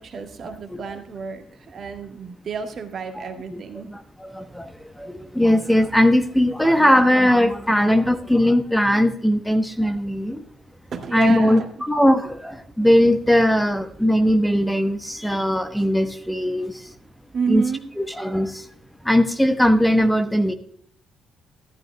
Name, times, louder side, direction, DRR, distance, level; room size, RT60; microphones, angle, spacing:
voice 1, 0.0-3.9 10.9-11.7 17.3-17.8, right 6 dB, 45° right, 6 dB, 1.6 m, -30 dB
voice 2, 3.1-3.6 3.9-4.7 5.0-10.4 11.1-16.7 17.5-17.6 18.0-18.6 19.0-20.5, equal, 5° left, 11 dB, 0.9 m, -19 dB
14.0 x 11.5 x 2.2 m, 0.63 s
figure-of-eight pair, 45°, 0 cm